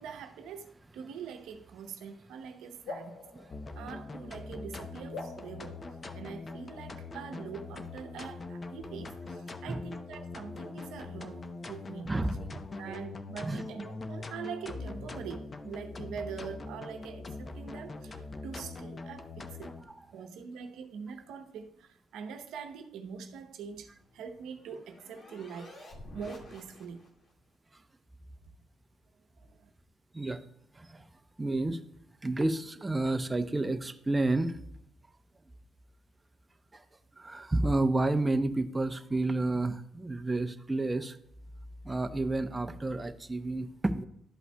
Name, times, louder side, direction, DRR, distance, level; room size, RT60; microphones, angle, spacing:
voice 1, 0.0-3.2 3.8-5.9 6.1-12.1 12.8-19.8 20.1-27.1 29.4-29.7, right 6 dB, 85° right, 0.8 m, -44 dB
sound 1, 2.9-4.5 5.1-6.8, left 3 dB, 90° left, 1.3 m, -46 dB
sound 2, 3.5-19.8, left 3 dB, 35° left, 0.7 m, -42 dB
voice 2, 12.0-13.0 13.4-13.6 19.9-20.0 30.1-30.4 30.7-31.0 31.4-31.8 32.2-34.5 36.7-36.8 37.2-41.2 41.8-44.0, right 2 dB, 15° right, 0.6 m, -30 dB
sound 3, 23.7-27.3, left 1 dB, 50° left, 1.8 m, -51 dB
12.0 x 5.5 x 2.2 m
cardioid pair, 90°, 0 cm